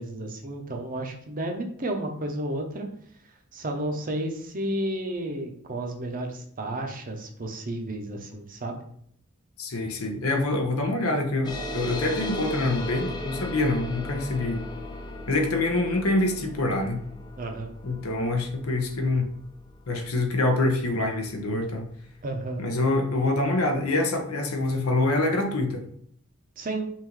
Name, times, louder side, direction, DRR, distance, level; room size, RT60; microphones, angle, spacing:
voice 1, 0.0-2.9 3.5-8.8 17.4-17.7 22.2-22.6 26.6-26.9, right 1 dB, 40° right, 4 dB, 0.7 m, -32 dB
voice 2, 9.6-14.6 15.3-17.0 17.8-19.3 19.9-21.8 22.6-25.8, left 2 dB, 85° left, 4 dB, 0.9 m, -25 dB
sound 1, 11.4-22.4, left 1 dB, 20° left, 0.6 m, -38 dB
5.5 x 2.6 x 3.1 m, 0.67 s
head